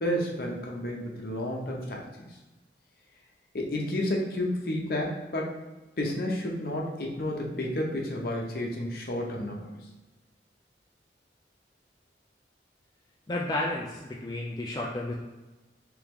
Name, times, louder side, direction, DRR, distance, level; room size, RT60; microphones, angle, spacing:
voice 1, 0.0-2.0 3.5-5.6 6.0-9.7, left 1 dB, 55° left, -1 dB, 0.7 m, -31 dB
voice 2, 13.3-15.1, left 1 dB, 25° left, -2 dB, 0.3 m, -32 dB
3.4 x 3.1 x 3.5 m, 1.1 s
head